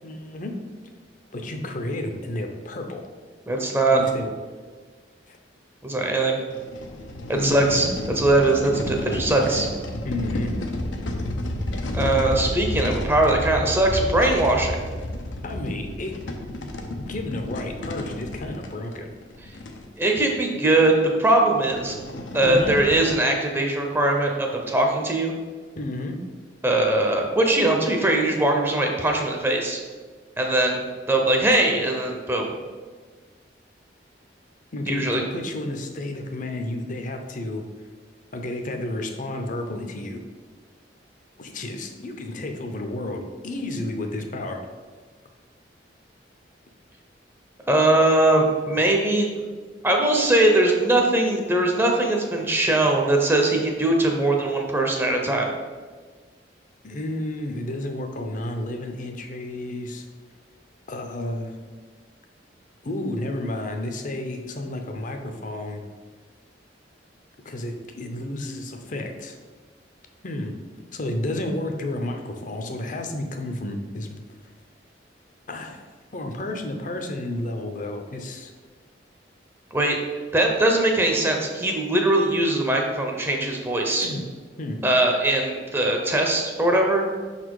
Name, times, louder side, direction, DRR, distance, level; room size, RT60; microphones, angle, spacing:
voice 1, 0.0-0.6 1.3-3.0 3.9-4.3 5.3-5.4 7.3-7.8 10.0-10.6 15.4-16.2 16.6-19.1 22.4-22.7 25.8-26.2 34.7-37.6 38.3-40.2 41.4-44.6 56.8-60.1 60.9-61.6 62.8-65.8 67.4-69.4 70.2-70.5 70.9-74.2 75.5-75.8 76.1-78.5 84.0-84.2 84.6-84.8, left 1 dB, 45° left, 5 dB, 0.7 m, -31 dB
voice 2, 3.5-4.0 5.8-6.4 7.4-7.9 8.2-9.7 11.9-14.8 20.0-22.0 22.3-25.3 26.6-29.8 30.4-32.5 34.9-35.2 47.7-49.4 49.8-55.5 79.7-80.0 80.3-84.1 84.8-87.0, right 2 dB, 10° right, 1 dB, 0.6 m, -21 dB
sound 1, 6.5-19.8 20.5-20.6 20.9-21.0 21.5-23.1, left 1 dB, 85° left, 0.7 m, -31 dB
5.8 x 4.2 x 4.7 m, 1.5 s
head